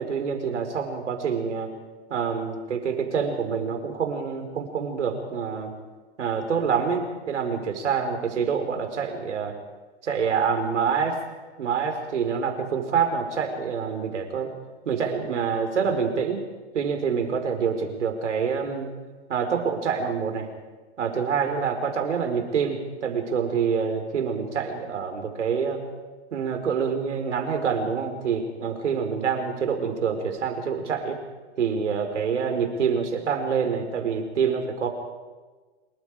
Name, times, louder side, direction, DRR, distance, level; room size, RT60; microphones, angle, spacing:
voice 1, 0.0-1.7 2.1-5.7 6.2-9.6 10.0-11.2 11.6-14.5 14.8-16.4 16.7-18.9 19.3-20.5 21.0-25.8 26.3-31.2 31.6-34.9, right 6 dB, 90° right, 5 dB, 4.8 m, -26 dB
26.5 x 23.5 x 5.0 m, 1.3 s
hypercardioid pair, 170°, 35 cm